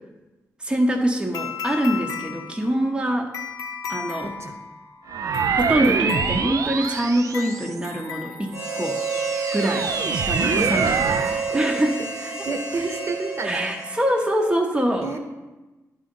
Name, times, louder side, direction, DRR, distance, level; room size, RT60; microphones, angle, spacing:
voice 1, 0.6-3.3 3.9-4.3 5.5-9.0 9.5-11.0 11.5-12.0 13.4-15.1, right 1 dB, 15° right, 1 dB, 0.8 m, -24 dB
sound 1, 1.3-9.0, left 6 dB, 90° left, 0.7 m, -35 dB
voice 2, 4.2-4.6 9.8-11.6 12.2-13.7 15.0-15.2, right 3 dB, 50° right, 5 dB, 1.1 m, -32 dB
sound 2, 5.1-8.0 8.6-11.4, right 6 dB, 70° right, 0.4 m, -25 dB
Harmonica, 8.5-14.3, right 4 dB, 90° right, 1.8 m, -30 dB
10.5 x 3.8 x 5.3 m, 1.1 s
cardioid pair, 80°, 6 cm